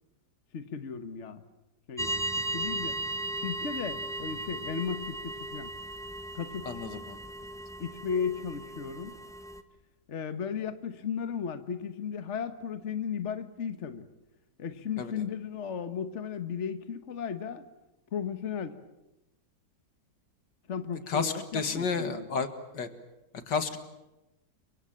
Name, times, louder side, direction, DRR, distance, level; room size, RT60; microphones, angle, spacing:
voice 1, 0.5-1.4 1.9-3.0 3.4-5.7 6.3-6.7 7.8-9.2 10.1-14.1 14.6-17.6 18.1-18.8 20.7-22.4, left 7 dB, 45° left, 10 dB, 1.5 m, -35 dB
sound 1, 2.0-9.6, right 1 dB, ahead, 1.2 m, -36 dB
voice 2, 6.7-7.2 15.0-15.1 21.1-22.5 22.7-22.9 23.5-23.9, left 5 dB, 80° left, 9 dB, 2.5 m, -31 dB
30.0 x 24.5 x 7.6 m, 0.96 s
omnidirectional pair, 1.9 m